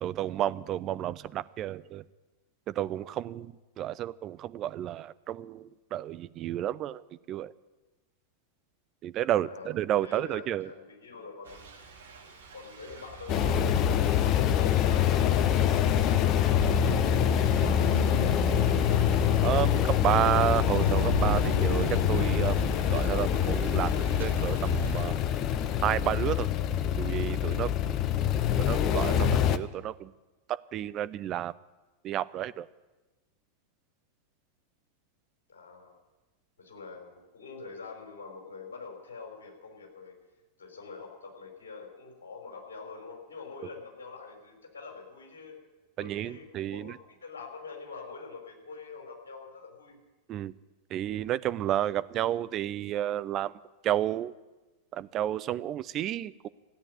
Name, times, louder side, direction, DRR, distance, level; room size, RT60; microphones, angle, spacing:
voice 1, 0.0-2.0 2.7-7.0 7.3-7.5 9.0-10.7 19.4-22.6 22.9-25.2 25.8-26.5 27.0-28.0 28.7-30.1 30.5-31.5 32.0-32.7 46.0-47.0 50.3-50.5 50.9-53.5 53.8-54.3 54.9-56.5, right 12 dB, 35° right, 15 dB, 0.5 m, -31 dB
voice 2, 9.3-9.7 10.0-11.7 12.5-13.6 13.9-18.9 35.5-36.0 36.6-40.1 40.6-45.6 46.0-46.5 46.7-46.9 47.2-50.0, left 4 dB, 65° left, 0 dB, 4.7 m, -45 dB
Thunder / Rain, 11.5-25.1, right 6 dB, 65° right, 1.9 m, -39 dB
sound 1, 13.3-29.6, left 9 dB, 35° left, 0.7 m, -25 dB
15.5 x 8.6 x 9.3 m, 1.1 s
figure-of-eight pair, 90°, 0 cm